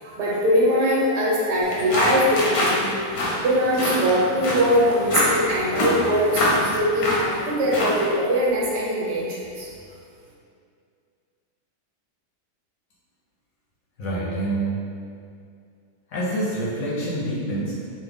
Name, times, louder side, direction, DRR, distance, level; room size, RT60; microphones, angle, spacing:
voice 1, 0.0-2.9 3.4-9.7, equal, 80° right, -4 dB, 1.3 m, -22 dB
sound 1, 1.6-8.1, left 1 dB, 85° left, 1.3 m, -25 dB
voice 2, 14.0-14.8 16.1-17.7, right 1 dB, 70° left, -7 dB, 0.9 m, -26 dB
3.3 x 2.1 x 3.4 m, 2.3 s
omnidirectional pair, 1.8 m